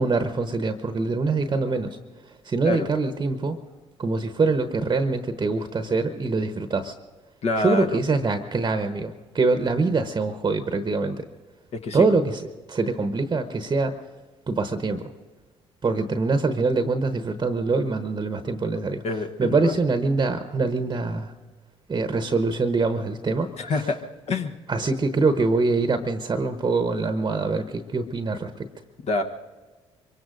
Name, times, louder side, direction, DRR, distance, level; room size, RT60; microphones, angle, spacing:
voice 1, 0.0-3.6 4.0-6.9 7.6-11.2 11.9-14.0 14.5-15.1 15.8-19.0 19.4-21.3 21.9-23.9 24.7-28.7, right 3 dB, 30° right, 9 dB, 1.0 m, -24 dB
voice 2, 7.4-8.0 11.7-12.1 19.0-19.7 23.6-24.0 24.3-24.5 29.1-29.2, left 3 dB, 50° left, 5 dB, 1.1 m, -26 dB
24.0 x 23.0 x 2.6 m, 1.3 s
hypercardioid pair, 50°, 14 cm